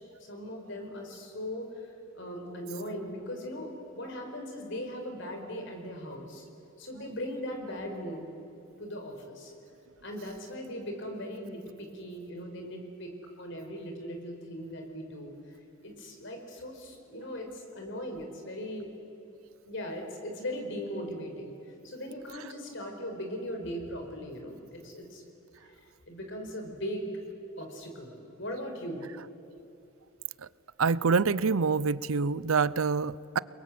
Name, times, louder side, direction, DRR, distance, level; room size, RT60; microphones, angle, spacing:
voice 1, 0.0-6.5 6.8-8.2 8.8-9.5 10.0-15.3 15.8-18.9 19.6-25.2 26.1-27.1 27.6-29.0, equal, 60° left, 3 dB, 4.9 m, -39 dB
voice 2, 30.8-33.4, right 5 dB, 85° right, 19 dB, 0.6 m, -26 dB
30.0 x 22.0 x 7.7 m, 2.8 s
head